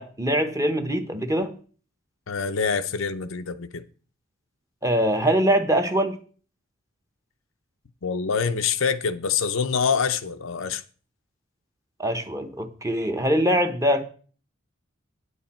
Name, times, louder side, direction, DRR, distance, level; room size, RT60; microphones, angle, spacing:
voice 1, 0.0-1.5 4.8-6.2 12.0-14.0, equal, 15° right, 1.0 m, -23 dB
voice 2, 2.3-3.8 8.0-10.8, left 6 dB, 65° left, 0.6 m, -25 dB
9.7 x 8.0 x 4.3 m
head